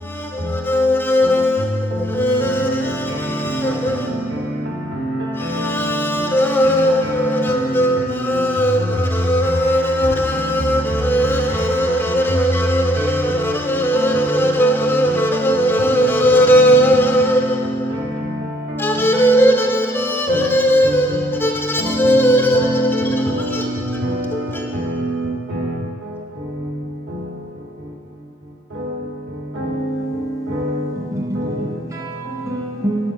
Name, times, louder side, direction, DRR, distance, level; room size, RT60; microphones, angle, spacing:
voice 1, 0.0-4.3 5.4-18.1 18.8-23.7 24.3-24.7, equal, 10° left, 0.4 m, -18 dB
voice 2, 3.2-3.5 5.5-5.7 6.7-6.9 7.2-7.3 8.1-8.2 13.9-14.4 16.7-17.1 17.9-18.2 19.2-19.3 20.3-20.5 20.8-21.0 21.8-24.2 24.7-25.7 29.6-29.9 30.5-30.9, equal, 75° right, 2.2 m, -23 dB
voice 3, 30.9-33.1, right 1 dB, 20° right, 0.7 m, -26 dB
7.9 x 5.3 x 4.9 m
head